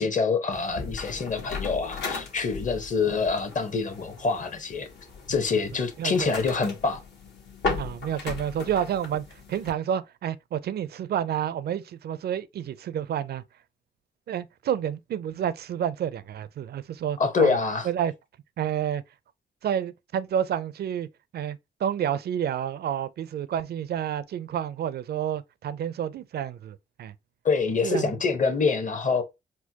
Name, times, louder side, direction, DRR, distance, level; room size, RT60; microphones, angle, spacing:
voice 1, 0.0-4.9 5.3-7.0 17.2-17.9 27.4-29.2, left 4 dB, 45° left, 0.9 m, -26 dB
sound 1, 0.5-9.7, left 4 dB, 70° left, 1.2 m, -36 dB
voice 2, 6.0-6.3 7.8-13.4 14.3-17.6 17.8-18.1 18.6-19.0 19.6-21.1 21.3-27.1 27.8-28.1, right 9 dB, 60° right, 0.4 m, -29 dB
4.3 x 2.2 x 2.8 m
cardioid pair, 60°, 19 cm